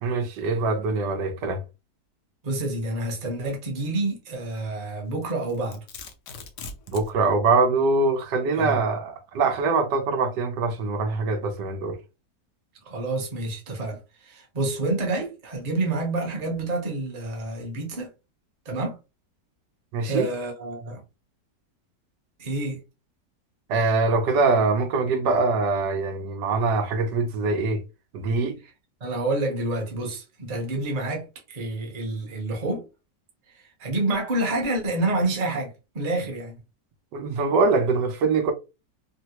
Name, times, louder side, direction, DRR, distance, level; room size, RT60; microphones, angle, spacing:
voice 1, 0.0-1.6 6.9-12.0 19.9-20.3 23.7-27.8 28.1-28.6 37.1-38.5, right 3 dB, 85° right, 1.3 m, -23 dB
voice 2, 2.4-5.8 8.5-8.8 12.8-18.1 18.6-19.0 20.0-21.0 22.4-22.8 29.0-32.9 33.5-36.6, right 2 dB, 35° right, 0.7 m, -28 dB
Domestic sounds home sounds, 5.2-7.1, left 4 dB, 75° left, 1.2 m, -40 dB
3.6 x 2.0 x 2.8 m
omnidirectional pair, 1.9 m